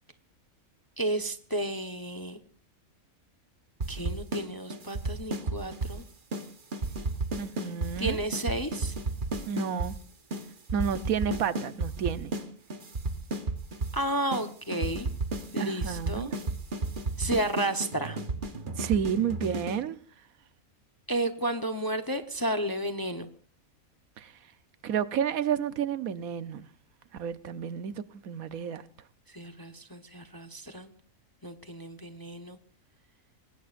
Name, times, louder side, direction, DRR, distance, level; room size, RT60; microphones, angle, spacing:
voice 1, 1.0-2.4 3.9-6.0 8.0-8.9 13.9-15.1 15.5-16.3 17.2-18.2 21.1-23.3 29.3-30.9 31.4-32.6, right 1 dB, 15° left, 0.9 m, -32 dB
sound 1, 3.8-4.4 4.7-6.0 6.3-6.5 6.7-9.9 10.3-10.4 10.7-12.4 12.7-14.0 14.3-14.4 14.7-19.8, right 3 dB, 40° right, 1.3 m, -32 dB
voice 2, 7.4-8.2 9.5-9.9 10.7-12.3 15.6-16.3 18.8-20.0 24.2-24.3 24.8-26.7 27.2-27.9 28.2-28.8, right 8 dB, 80° right, 1.3 m, -30 dB
25.5 x 19.5 x 2.6 m
omnidirectional pair, 1.5 m